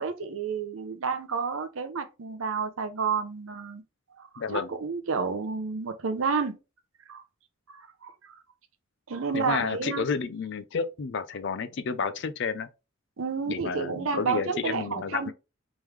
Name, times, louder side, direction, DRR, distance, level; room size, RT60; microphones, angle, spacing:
voice 1, 0.0-3.8 4.2-6.6 7.1-7.2 7.7-8.4 9.1-10.1 13.2-15.3, right 5 dB, 70° right, 0.7 m, -30 dB
voice 2, 4.4-4.7 9.3-12.7 13.5-15.3, left 5 dB, 55° left, 0.4 m, -31 dB
3.5 x 3.1 x 3.2 m
head